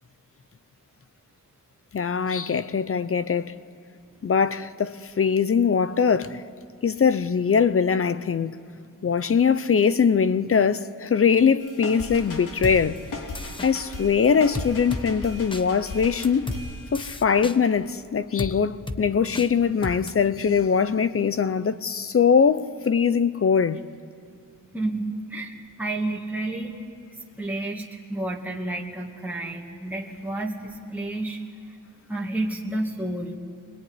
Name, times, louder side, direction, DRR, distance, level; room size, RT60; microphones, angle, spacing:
voice 1, 1.9-3.6 4.2-6.4 6.8-8.6 9.0-13.0 13.6-16.5 16.9-23.8, left 6 dB, 40° left, 0.8 m, -22 dB
sound 1, 11.6-17.4, left 2 dB, 70° left, 3.4 m, -37 dB
sound 2, 12.6-12.8 13.3-13.7 14.5-15.0 15.5-15.6 16.2-16.6 16.9-17.6 18.4-18.5 18.9-19.0 19.3-19.5 19.8-20.1, left 2 dB, 15° left, 1.0 m, -32 dB
voice 2, 24.7-26.8 27.4-31.4 32.1-33.4, right 2 dB, 5° right, 2.3 m, -30 dB
25.0 x 21.5 x 9.8 m
wide cardioid pair, 120°, 33 cm